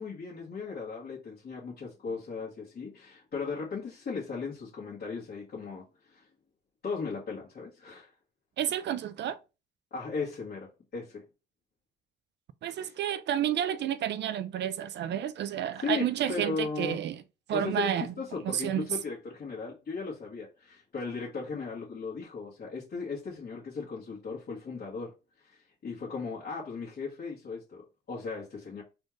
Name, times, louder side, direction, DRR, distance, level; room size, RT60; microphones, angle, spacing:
voice 1, 0.0-6.2 6.8-8.1 9.9-11.2 12.7-12.9 15.8-17.0 17.5-25.1 25.4-27.8 28.1-28.8, left 4 dB, 50° left, 1.4 m, -37 dB
voice 2, 8.6-9.4 12.6-17.2 17.5-18.1 18.4-18.9, right 10 dB, 60° right, 0.4 m, -30 dB
4.2 x 2.4 x 3.1 m
cardioid pair, 90°, 20 cm